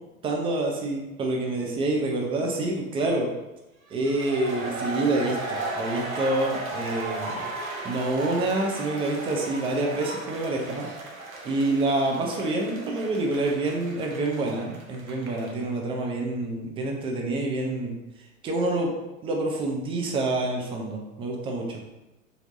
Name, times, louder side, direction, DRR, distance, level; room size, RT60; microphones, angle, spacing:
voice 1, 0.2-3.3 3.9-7.4 7.8-10.9 11.4-18.0 18.4-18.9 19.2-21.8, right 2 dB, 15° right, 0 dB, 0.4 m, -27 dB
M Long Applause n Hoots, 4.0-15.6, right 2 dB, 80° right, 0.7 m, -35 dB
4.4 x 2.7 x 2.5 m, 0.99 s
figure-of-eight pair, 85°, 41 cm